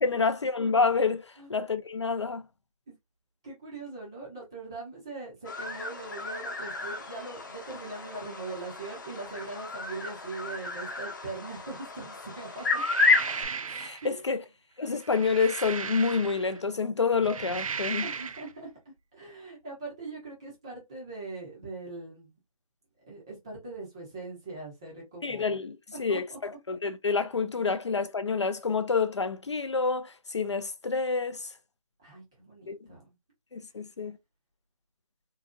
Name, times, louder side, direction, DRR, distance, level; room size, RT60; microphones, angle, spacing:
voice 1, 0.0-2.4 13.7-14.4 14.8-18.1 25.2-31.5 32.7-32.8 33.5-34.2, left 4 dB, 50° left, 0.5 m, -28 dB
voice 2, 3.4-12.8 14.0-14.4 18.0-22.4 23.1-25.4 25.9-26.4 27.6-27.7 32.0-33.0, right 3 dB, 10° right, 0.6 m, -41 dB
sound 1, 5.4-13.4, left 3 dB, 30° left, 0.9 m, -31 dB
sound 2, 12.6-14.1 14.9-16.6 17.1-18.5, right 6 dB, 65° right, 0.4 m, -36 dB
3.8 x 2.7 x 2.3 m
figure-of-eight pair, 170°, 19 cm